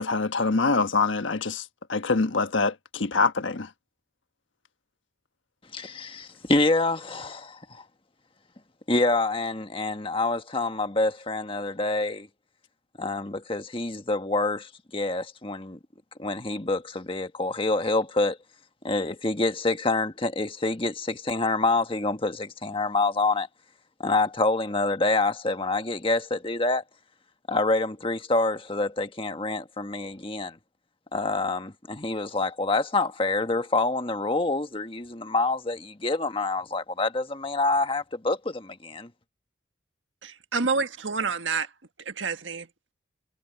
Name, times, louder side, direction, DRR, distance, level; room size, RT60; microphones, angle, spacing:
voice 1, 0.0-1.6 1.9-3.7, left 4 dB, 90° left, 1.3 m, -24 dB
voice 2, 5.7-7.8 8.9-12.3 13.0-15.8 16.2-18.4 18.8-23.5 24.0-26.8 27.5-30.6 31.1-39.1, left 2 dB, 30° left, 1.4 m, -27 dB
voice 3, 40.2-41.7 42.0-42.7, right 4 dB, 80° right, 1.6 m, -28 dB
head